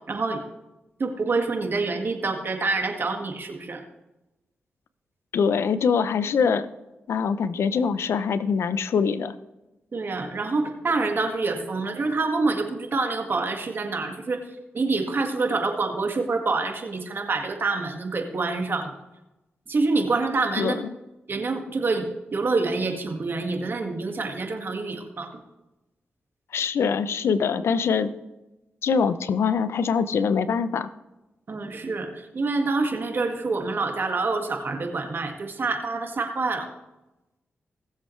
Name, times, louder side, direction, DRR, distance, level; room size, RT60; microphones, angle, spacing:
voice 1, 0.1-0.4 1.0-3.8 9.9-14.4 14.7-18.9 19.7-20.8 21.3-25.3 31.5-36.7, right 3 dB, 55° right, 4 dB, 1.9 m, -26 dB
voice 2, 5.3-6.7 7.1-9.3 20.6-20.9 26.5-28.1 28.8-30.9, left 6 dB, 80° left, 13 dB, 0.6 m, -23 dB
18.5 x 7.3 x 3.2 m, 0.99 s
cardioid pair, 55°, 4 cm